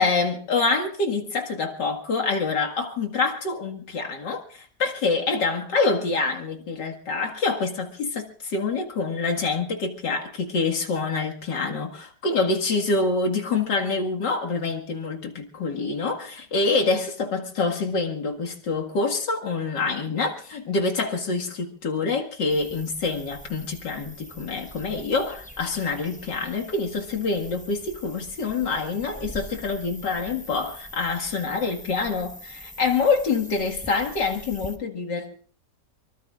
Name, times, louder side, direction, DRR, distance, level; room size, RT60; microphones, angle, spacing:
voice 1, 0.0-35.3, left 4 dB, 85° left, 2.6 m, -26 dB
sound 1, 22.5-34.8, equal, 5° left, 0.8 m, -43 dB
24.0 x 24.0 x 2.5 m
omnidirectional pair, 1.8 m